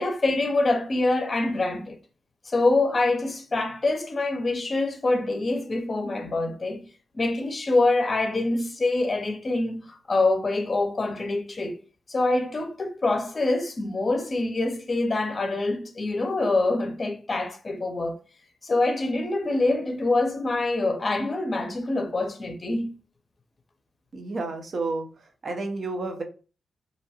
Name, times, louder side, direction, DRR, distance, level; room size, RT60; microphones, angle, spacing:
voice 1, 0.0-2.0 2.5-6.8 7.1-11.8 12.1-18.2 18.6-22.9, left 2 dB, 45° left, 0.5 m, -25 dB
voice 2, 24.1-25.1 25.4-26.2, right 3 dB, 60° right, 0.6 m, -30 dB
2.5 x 2.2 x 2.8 m
cardioid pair, 55°, 0 cm